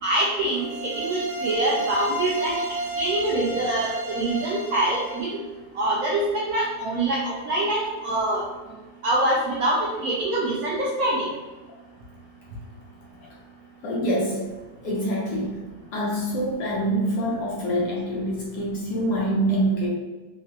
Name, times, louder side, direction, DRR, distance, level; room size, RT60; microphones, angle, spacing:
voice 1, 0.0-2.6 3.0-5.3 5.8-8.4 9.0-11.3, right 1 dB, 80° right, -4 dB, 0.8 m, -25 dB
sound 1, 0.5-5.3, right 2 dB, 45° right, 1.1 m, -32 dB
voice 2, 13.8-14.4 14.8-15.6 15.9-19.9, right 1 dB, 70° left, -4 dB, 1.1 m, -25 dB
3.6 x 2.0 x 2.8 m, 1.2 s
omnidirectional pair, 2.1 m